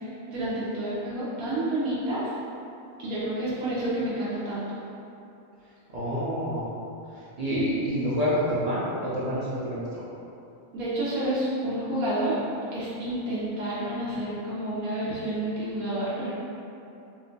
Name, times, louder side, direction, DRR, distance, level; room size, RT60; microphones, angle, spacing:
voice 1, 0.3-2.2 3.0-4.6 10.7-12.4 12.7-16.3, right 1 dB, 85° right, -9 dB, 1.2 m, -29 dB
voice 2, 5.9-6.7 7.4-10.0, equal, 45° right, -10 dB, 0.5 m, -27 dB
2.9 x 2.2 x 3.8 m, 2.8 s
omnidirectional pair, 1.4 m